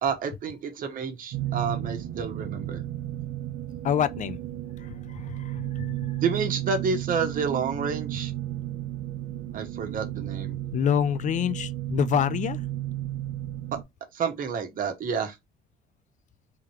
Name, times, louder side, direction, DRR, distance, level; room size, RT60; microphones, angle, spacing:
voice 1, 0.0-2.8 6.2-8.3 9.5-10.5 14.1-15.4, right 5 dB, 55° right, 1.3 m, -29 dB
sound 1, 1.3-13.8, right 13 dB, 75° right, 0.9 m, -33 dB
voice 2, 3.8-4.4 4.8-6.2 10.7-12.6, left 9 dB, 45° left, 0.4 m, -27 dB
3.8 x 2.8 x 4.7 m
cardioid pair, 110°, 17 cm